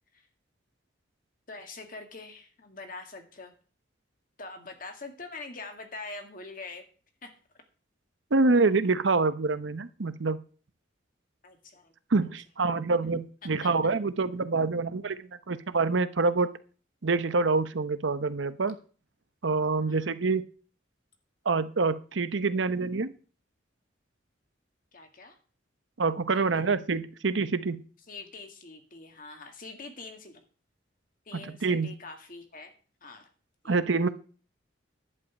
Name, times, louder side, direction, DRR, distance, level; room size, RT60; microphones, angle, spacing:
voice 1, 1.5-3.5 4.4-6.8 7.2-7.3 11.4-11.9 12.7-12.8 13.6-13.7 19.8-20.1 24.9-25.4 26.3-26.7 28.1-30.4 31.3-32.7 33.0-33.3 33.6-34.0, left 3 dB, 45° left, 5 dB, 2.0 m, -44 dB
voice 2, 8.3-10.4 12.1-16.5 17.0-18.8 19.4-20.5 21.5-23.1 26.0-27.8 31.3-31.9 33.6-34.1, right 3 dB, 75° right, 13 dB, 0.8 m, -26 dB
10.5 x 5.5 x 8.4 m, 0.40 s
head